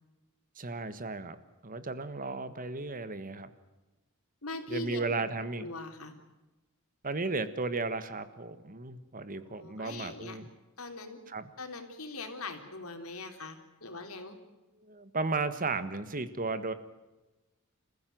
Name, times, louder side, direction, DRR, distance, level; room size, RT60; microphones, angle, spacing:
voice 1, 0.6-1.4 1.6-3.5 4.7-5.7 7.0-10.5 11.3-11.5 14.8-16.7, right 3 dB, 40° right, 12 dB, 1.5 m, -34 dB
voice 2, 4.4-5.2 5.6-6.1 9.5-10.4 10.8-11.2 11.6-14.4, left 2 dB, 85° left, 6 dB, 3.5 m, -41 dB
28.0 x 15.0 x 9.3 m, 1.1 s
head